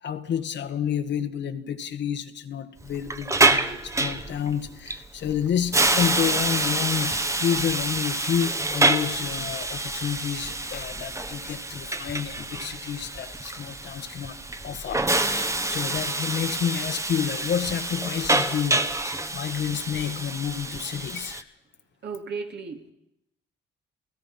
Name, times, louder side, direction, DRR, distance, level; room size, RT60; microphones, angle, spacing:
voice 1, 0.0-21.4, left 8 dB, 65° left, 1.6 m, -30 dB
Hiss, 2.8-21.4, right 2 dB, 15° right, 1.3 m, -27 dB
voice 2, 22.0-22.9, right 5 dB, 60° right, 2.9 m, -34 dB
28.5 x 16.5 x 5.6 m
cardioid pair, 90°, 20 cm